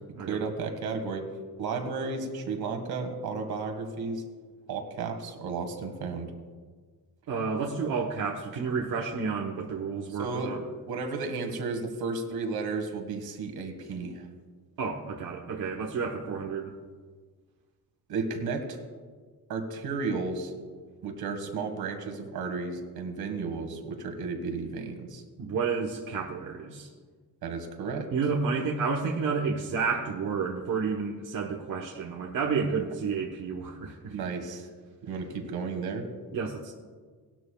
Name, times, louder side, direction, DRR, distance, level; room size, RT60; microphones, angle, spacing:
voice 1, 0.3-1.3 1.6-4.2 4.7-6.3 10.1-14.3 18.1-18.8 19.5-20.5 21.0-25.2 27.4-28.1 34.1-34.7 35.0-36.1, right 4 dB, 85° right, 5 dB, 1.8 m, -33 dB
voice 2, 7.3-10.6 14.8-16.7 25.4-26.9 28.1-34.1 36.3-36.7, right 5 dB, 65° right, 0 dB, 1.1 m, -30 dB
19.0 x 12.0 x 2.3 m, 1.5 s
wide cardioid pair, 180°, 36 cm